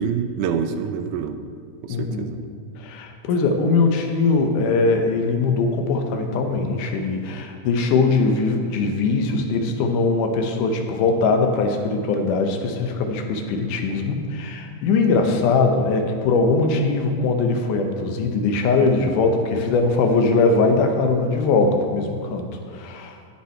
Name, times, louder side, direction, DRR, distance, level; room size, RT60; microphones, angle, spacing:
voice 1, 0.0-1.4 1.8-2.5, right 7 dB, 80° right, 7 dB, 2.1 m, -26 dB
voice 2, 1.9-2.3 2.8-23.2, left 3 dB, 90° left, 4 dB, 2.5 m, -21 dB
16.5 x 5.7 x 4.4 m, 2.2 s
omnidirectional pair, 3.5 m